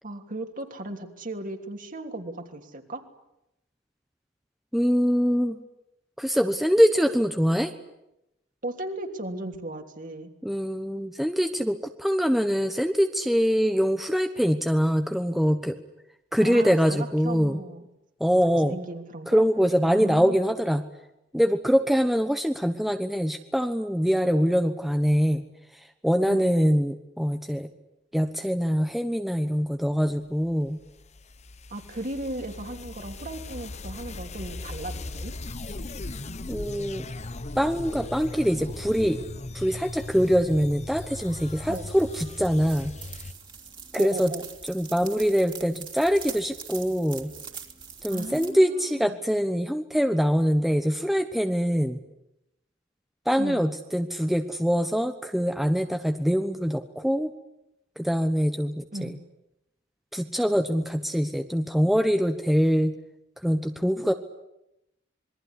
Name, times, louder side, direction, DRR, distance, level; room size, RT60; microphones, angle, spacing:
voice 1, 0.0-3.0 8.6-10.3 16.4-17.8 18.6-19.4 19.8-20.4 26.3-26.4 31.7-35.3 41.7-41.9 44.0-44.4 48.1-49.2 53.4-53.6 58.9-59.2, right 1 dB, 45° right, 5 dB, 3.2 m, -36 dB
voice 2, 4.7-5.6 6.2-7.7 10.4-15.7 16.3-17.6 18.2-18.8 19.3-20.8 21.3-25.4 26.0-27.7 28.1-30.8 36.5-37.1 37.6-39.2 39.5-42.9 43.9-44.3 44.7-47.3 48.0-52.0 53.3-57.3 58.0-59.1 60.1-62.9 63.4-64.1, equal, ahead, 6 dB, 1.1 m, -24 dB
sound 1, 30.5-43.3, left 2 dB, 35° left, 1.0 m, -38 dB
sound 2, 40.6-48.5, right 6 dB, 25° right, 3.0 m, -43 dB
27.0 x 22.0 x 9.9 m, 0.87 s
head